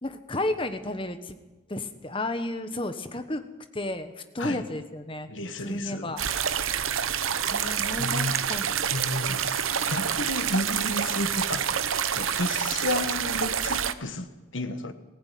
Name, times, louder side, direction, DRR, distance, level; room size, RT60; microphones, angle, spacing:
voice 1, 0.0-1.4 1.7-3.4 3.7-5.3 5.6-6.2 7.5-8.7 9.4-9.5, left 1 dB, 25° left, 9 dB, 1.3 m, -32 dB
voice 2, 5.3-6.1 8.0-8.3 8.9-9.4 9.8-11.8 12.1-14.9, left 2 dB, 70° left, 9 dB, 1.6 m, -32 dB
sound 1, 6.2-13.9, right 8 dB, 85° right, 0.9 m, -27 dB
20.0 x 15.5 x 9.4 m, 1.1 s
head